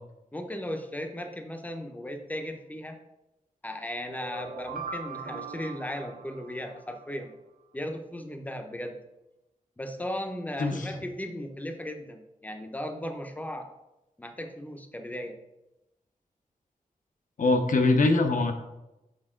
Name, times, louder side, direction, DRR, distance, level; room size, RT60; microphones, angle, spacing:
voice 1, 0.3-3.0 3.6-7.3 7.7-9.0 9.8-13.7 14.2-15.4, left 1 dB, 10° left, 5 dB, 0.7 m, -36 dB
sound 1, 4.1-7.1, right 5 dB, 90° right, 0.8 m, -40 dB
voice 2, 17.4-18.5, left 3 dB, 70° left, 6 dB, 0.8 m, -22 dB
6.5 x 5.4 x 3.7 m, 0.95 s
wide cardioid pair, 115°, 14 cm